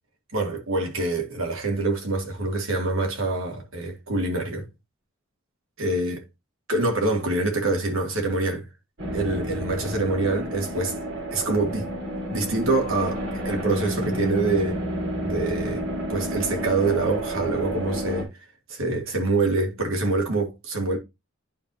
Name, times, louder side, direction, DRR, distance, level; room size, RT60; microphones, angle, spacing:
voice 1, 0.3-4.7 5.8-6.2 6.7-8.7 9.1-11.0 11.3-11.9 12.3-14.8 15.2-18.3 18.7-21.0, right 2 dB, 80° right, 2.4 m, -25 dB
sound 1, 9.0-18.2, equal, 60° right, 3.7 m, -30 dB
11.0 x 4.7 x 2.7 m
head